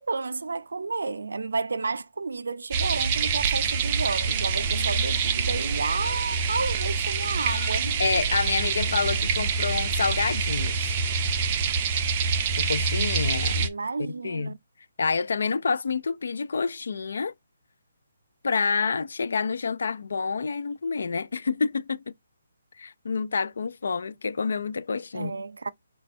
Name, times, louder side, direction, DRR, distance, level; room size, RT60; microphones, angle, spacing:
voice 1, 0.0-8.0 13.5-14.6 25.1-25.7, right 4 dB, 90° right, 0.5 m, -31 dB
sound 1, 2.7-13.7, right 5 dB, 20° right, 0.4 m, -26 dB
Bird, 3.6-11.6, left 3 dB, 15° left, 0.9 m, -44 dB
voice 2, 8.0-11.0 12.6-13.6 14.0-14.5 15.0-17.3 18.4-22.1 22.8-25.3, left 5 dB, 65° left, 0.4 m, -28 dB
5.1 x 2.2 x 4.2 m
hypercardioid pair, 175°, 0 cm